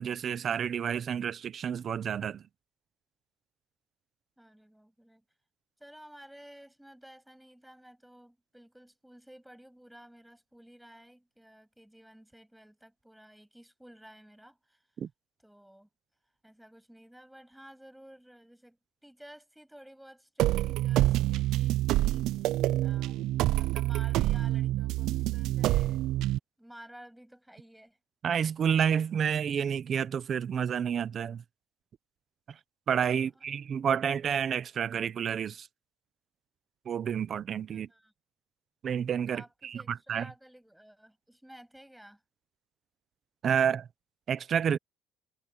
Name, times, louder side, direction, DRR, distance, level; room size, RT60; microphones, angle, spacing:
voice 1, 0.0-2.4 15.0-15.1 28.2-31.4 32.9-35.7 36.9-37.9 38.8-40.3 43.4-43.9 44.3-44.8, right 8 dB, 35° right, 0.9 m, -29 dB
voice 2, 4.4-5.2 5.8-14.9 15.4-15.9 16.4-22.6 22.8-26.0 26.6-28.0 33.1-33.6 37.7-38.1 39.3-42.2, equal, ahead, 7.5 m, -53 dB
sound 1, 20.4-26.4, right 15 dB, 60° right, 0.6 m, -27 dB
cardioid pair, 150°, 0 cm